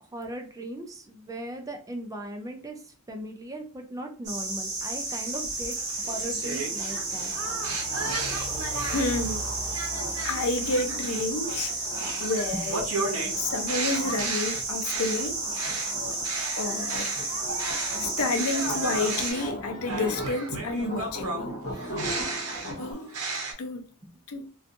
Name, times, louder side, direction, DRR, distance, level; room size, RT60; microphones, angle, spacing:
voice 1, 0.0-5.8 6.1-7.3 12.5-12.6 13.0-13.4, right 1 dB, 15° right, 0.4 m, -38 dB
sound 1, 4.2-19.3, right 3 dB, 30° right, 1.0 m, -32 dB
sound 2, 5.1-9.2 9.7-18.0 18.3-23.5, right 3 dB, 70° right, 0.8 m, -35 dB
sound 3, 6.9-22.9, equal, 50° left, 1.1 m, -41 dB
voice 2, 8.9-9.5 9.7-9.9 10.2-11.8 12.2-12.8 13.4-15.4 16.6-17.1 18.0-21.5 22.8-23.1 23.6-23.9 24.3-24.5, left 3 dB, 70° left, 0.5 m, -30 dB
2.5 x 2.3 x 2.5 m
head